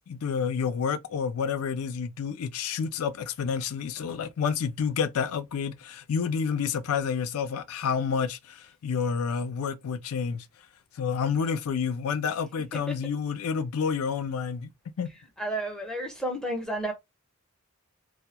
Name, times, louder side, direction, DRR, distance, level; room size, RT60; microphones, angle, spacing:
voice 1, 0.1-10.5 11.0-14.7 15.0-15.1, left 6 dB, 70° left, 0.4 m, -29 dB
voice 2, 15.4-16.9, right 1 dB, 5° left, 0.6 m, -31 dB
2.2 x 2.0 x 2.8 m
head